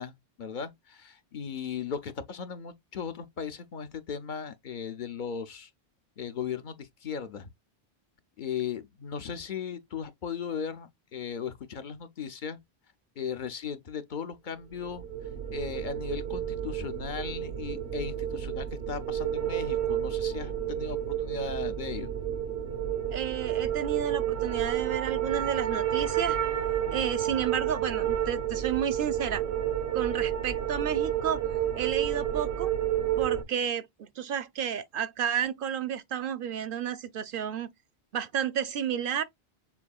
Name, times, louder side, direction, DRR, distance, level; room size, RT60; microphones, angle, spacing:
voice 1, 0.0-5.7 6.2-7.5 8.4-12.6 13.2-15.0 15.5-22.1, left 7 dB, 55° left, 0.7 m, -37 dB
sound 1, 14.8-33.4, right 10 dB, 85° right, 1.1 m, -30 dB
voice 2, 23.1-26.4 26.9-29.4 29.9-32.7 33.2-37.7 38.1-39.2, right 8 dB, 65° right, 0.7 m, -31 dB
7.0 x 2.6 x 2.3 m
omnidirectional pair, 1.1 m